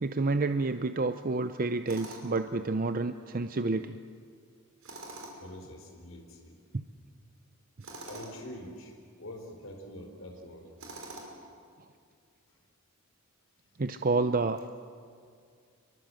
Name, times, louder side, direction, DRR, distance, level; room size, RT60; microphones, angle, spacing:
voice 1, 0.0-4.0 6.7-6.8 13.8-14.6, right 3 dB, 40° right, 10 dB, 0.6 m, -29 dB
Tools, 1.9-2.4 4.8-5.6 7.8-8.4 10.8-11.5, right 2 dB, 65° right, 5.4 m, -44 dB
voice 2, 5.4-6.6 8.1-10.7, left 1 dB, 65° left, 2 dB, 4.1 m, -45 dB
25.5 x 23.5 x 7.7 m, 2.3 s
head